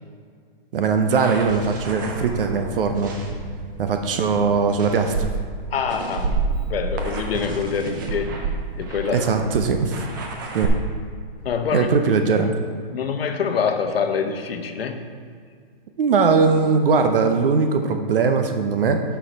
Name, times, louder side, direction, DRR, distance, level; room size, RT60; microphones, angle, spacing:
voice 1, 0.7-3.1 3.8-5.3 9.1-10.0 10.5-10.8 11.7-12.5 16.0-19.0, right 5 dB, 65° right, 6 dB, 0.7 m, -20 dB
sound 1, 1.0-10.7, right 4 dB, 20° right, 0.5 m, -30 dB
voice 2, 5.7-6.4 6.7-9.2 11.4-11.9 12.9-15.0, left 6 dB, 80° left, 7 dB, 0.8 m, -25 dB
6.4 x 5.7 x 4.5 m, 2.1 s
hypercardioid pair, 165°, 29 cm